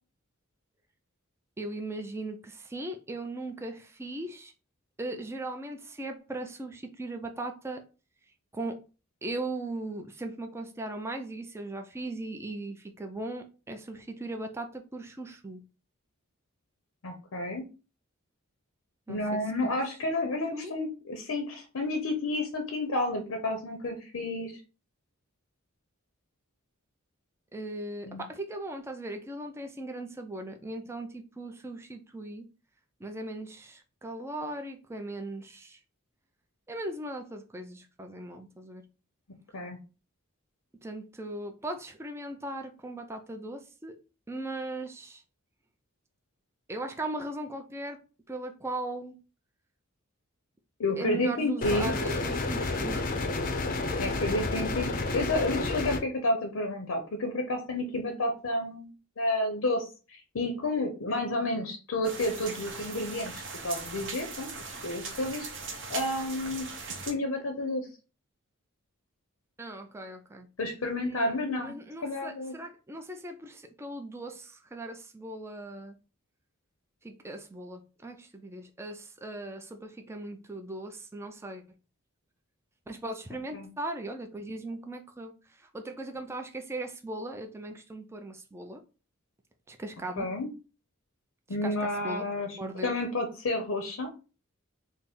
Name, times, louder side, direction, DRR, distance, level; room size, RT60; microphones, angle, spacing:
voice 1, 1.6-4.5 5.0-7.8 8.5-8.8 9.2-15.6 19.1-19.4 20.2-20.7 27.5-32.4 33.0-35.8 36.7-38.8 40.8-44.0 44.3-45.2 46.7-48.0 48.3-49.2 51.0-53.1 53.8-54.0 69.6-70.5 71.0-76.0 77.0-81.6 82.9-88.8 89.7-90.3 91.5-92.2 92.6-93.0, right 2 dB, 10° right, 4 dB, 0.4 m, -38 dB
voice 2, 17.0-17.6 19.1-24.5 28.1-28.2 39.5-39.8 50.8-51.9 54.0-58.9 59.2-65.5 65.9-66.7 67.0-67.9 70.6-71.7 72.0-72.5 83.5-83.7 90.2-90.5 91.5-92.6 92.8-94.1, left 2 dB, 80° left, 4 dB, 0.7 m, -30 dB
sound 1, 51.6-56.0, left 2 dB, 40° left, 0.5 m, -30 dB
sound 2, 62.0-67.1, right 4 dB, 60° right, 0.8 m, -39 dB
4.2 x 2.0 x 3.6 m, 0.34 s
head